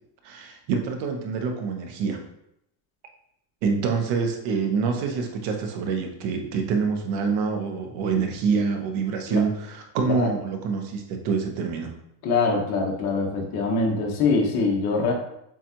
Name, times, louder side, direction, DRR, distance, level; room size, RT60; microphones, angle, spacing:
voice 1, 0.2-2.2 3.6-11.9, right 5 dB, 80° right, 4 dB, 1.0 m, -26 dB
voice 2, 12.2-15.1, left 4 dB, 55° left, 0 dB, 1.1 m, -23 dB
7.2 x 2.4 x 2.9 m, 0.78 s
cardioid pair, 175°, 45 cm